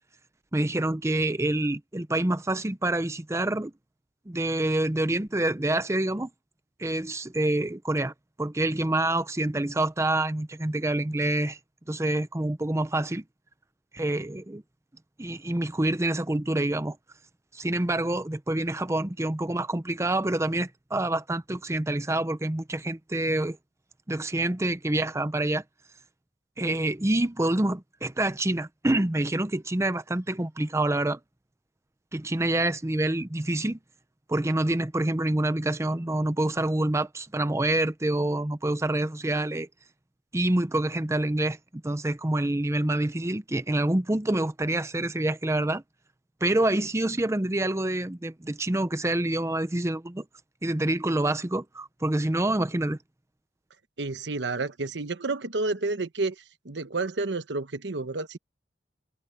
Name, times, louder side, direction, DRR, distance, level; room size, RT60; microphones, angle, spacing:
voice 1, 0.5-3.7 4.3-6.3 6.8-11.6 11.9-13.2 13.9-14.6 15.2-17.0 17.5-23.6 24.1-25.6 26.6-31.2 32.1-33.8 34.3-39.7 40.3-45.8 46.4-50.2 50.6-53.0, right 1 dB, 15° right, 0.7 m, -27 dB
voice 2, 54.0-56.3 56.6-58.4, right 3 dB, 85° right, 1.1 m, -30 dB
head